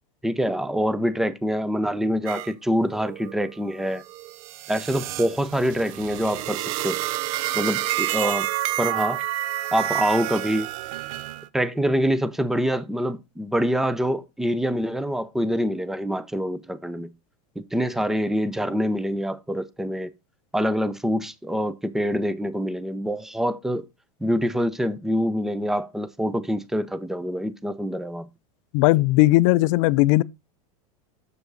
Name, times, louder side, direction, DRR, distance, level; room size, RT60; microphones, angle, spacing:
voice 1, 0.2-4.0 4.7-7.0 7.5-8.5 8.8-9.2 9.7-10.7 11.5-17.1 17.6-20.1 20.5-23.8 24.2-28.3, equal, ahead, 0.5 m, -25 dB
sound 1, 2.3-2.5 2.9-11.5, right 14 dB, 60° right, 0.5 m, -29 dB
voice 2, 28.7-30.2, left 19 dB, 55° left, 0.5 m, -18 dB
6.9 x 6.7 x 4.0 m
supercardioid pair, 130°, 20 cm